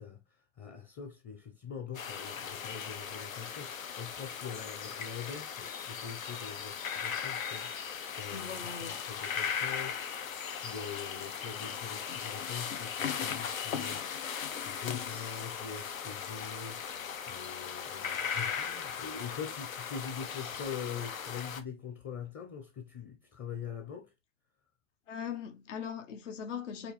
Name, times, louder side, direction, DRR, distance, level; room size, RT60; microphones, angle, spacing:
voice 1, 0.0-7.7 8.1-8.6 8.9-10.0 10.5-16.8 17.3-24.1, left 7 dB, 20° left, 1.0 m, -43 dB
sound 1, 1.9-21.6, left 7 dB, 80° left, 1.6 m, -38 dB
voice 2, 8.3-9.1 25.1-26.9, left 7 dB, 65° left, 1.7 m, -40 dB
8.1 x 3.3 x 4.4 m
hypercardioid pair, 145°, 40 cm